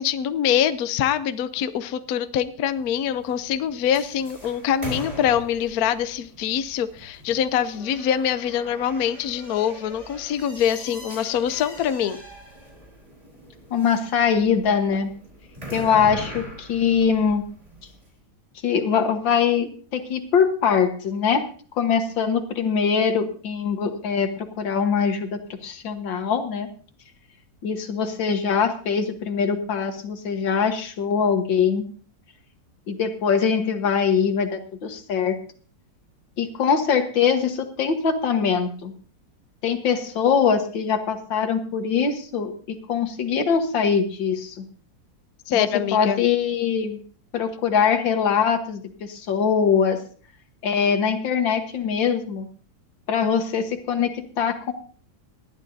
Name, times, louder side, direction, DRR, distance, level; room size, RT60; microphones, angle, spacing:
voice 1, 0.0-12.2 45.5-46.2, left 9 dB, 65° left, 12 dB, 1.0 m, -24 dB
sound 1, 2.6-18.1, right 1 dB, 20° right, 3.7 m, -41 dB
voice 2, 13.7-15.1 15.7-17.4 18.6-21.4 21.8-26.7 27.6-31.8 32.9-35.4 36.4-38.9 39.6-44.7 45.5-47.0 47.3-50.0 50.6-52.5 53.1-54.7, left 6 dB, 85° left, 7 dB, 2.1 m, -22 dB
19.0 x 12.5 x 2.7 m, 0.43 s
omnidirectional pair, 2.0 m